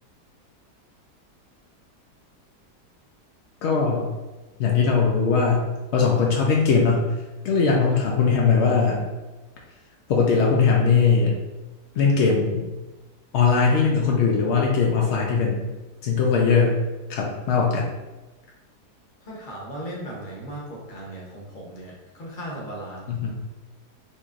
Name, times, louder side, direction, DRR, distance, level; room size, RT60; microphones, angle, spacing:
voice 1, 3.6-4.1 4.6-7.1 7.4-9.0 10.1-11.3 12.0-12.6 13.3-15.6 16.0-16.8 17.1-17.9 23.1-23.3, left 5 dB, 85° left, -1 dB, 0.6 m, -20 dB
voice 2, 7.6-8.1 19.2-23.3, right 1 dB, 40° left, -3 dB, 0.8 m, -37 dB
4.2 x 2.9 x 2.4 m, 1.2 s
omnidirectional pair, 1.8 m